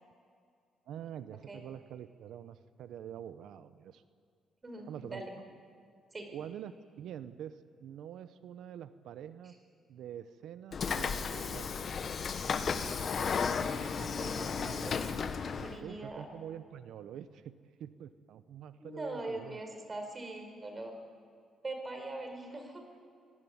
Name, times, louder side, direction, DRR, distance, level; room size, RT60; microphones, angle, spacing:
voice 1, 0.9-4.0 4.8-5.2 6.3-6.7 7.0-9.5 9.9-11.9 13.9-14.2 15.6-17.5 17.8-19.6, right 9 dB, 80° right, 12 dB, 0.9 m, -46 dB
voice 2, 4.6-5.3 6.1-6.3 14.0-15.0 15.5-16.3 18.8-21.0 21.6-22.8, right 2 dB, 30° right, 5 dB, 4.9 m, -42 dB
Train / Sliding door, 10.7-15.8, left 6 dB, 50° left, 1.5 m, -34 dB
24.5 x 17.5 x 9.6 m, 2.3 s
cardioid pair, 90°, 0 cm